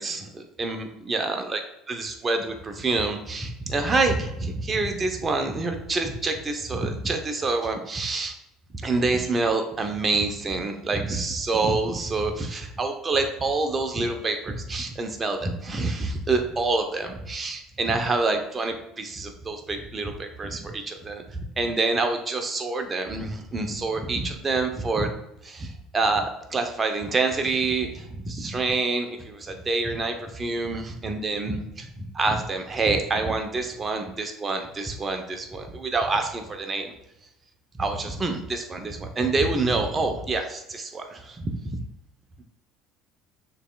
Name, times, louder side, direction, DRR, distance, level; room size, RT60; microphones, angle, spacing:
voice 1, 0.0-1.6 1.9-8.3 8.8-25.1 25.4-36.9 37.8-41.8, right 3 dB, 30° right, 5 dB, 0.8 m, -27 dB
6.3 x 3.3 x 2.4 m, 0.84 s
hypercardioid pair, 75°, 0 cm